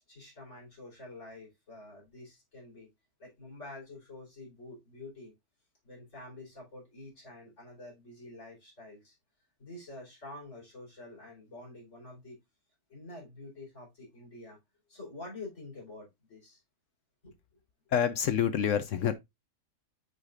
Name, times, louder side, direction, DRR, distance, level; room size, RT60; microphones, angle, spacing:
voice 1, 0.1-2.9 3.2-5.3 5.8-9.2 9.6-12.4 12.9-14.6 14.9-16.6 17.2-17.4, left 2 dB, 45° left, 4.5 m, -47 dB
voice 2, 17.9-19.1, left 8 dB, 65° left, 0.7 m, -27 dB
8.2 x 4.9 x 2.4 m
omnidirectional pair, 1.9 m